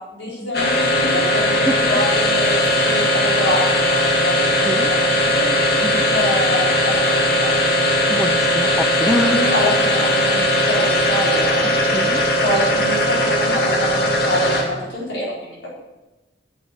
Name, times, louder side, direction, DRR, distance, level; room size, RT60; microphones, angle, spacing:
voice 1, 0.0-2.6 2.8-5.5 6.1-7.5 9.1-11.7 12.4-15.7, left 1 dB, 80° left, -4 dB, 4.0 m, -26 dB
sound 1, 0.5-14.9, equal, 60° left, 2.2 m, -18 dB
voice 2, 1.5-2.1 4.4-4.9 5.8-6.1 8.1-9.5 11.9-12.2, equal, ahead, 9 dB, 0.6 m, -26 dB
9.4 x 7.9 x 7.5 m, 1.1 s
head